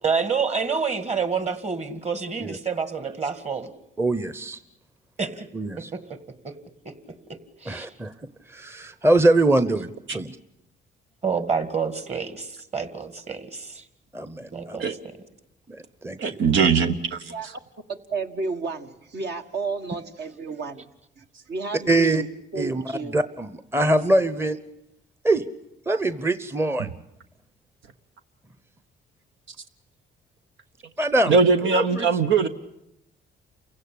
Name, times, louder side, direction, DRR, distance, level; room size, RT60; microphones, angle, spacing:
voice 1, 0.0-3.7 5.2-5.5 5.9-6.0 6.4-6.6 6.9-7.0 7.6-7.9 11.2-13.8 14.5-14.9, right 5 dB, 35° right, 10 dB, 2.2 m, -28 dB
voice 2, 4.0-4.6 5.5-5.9 7.7-8.1 8.5-10.4 14.1-14.8 15.7-16.4 21.9-22.2 22.6-24.6 25.2-25.5 25.9-26.9 31.0-31.3 31.7-32.1, right 2 dB, 10° right, 13 dB, 0.9 m, -23 dB
voice 3, 16.2-17.5 26.8-26.9 31.2-32.5, right 5 dB, 75° right, 7 dB, 1.1 m, -21 dB
voice 4, 17.9-20.9 21.2-22.3 22.5-23.2, right 4 dB, 55° right, 6 dB, 1.7 m, -32 dB
28.5 x 16.5 x 8.6 m, 0.82 s
cardioid pair, 90°, 20 cm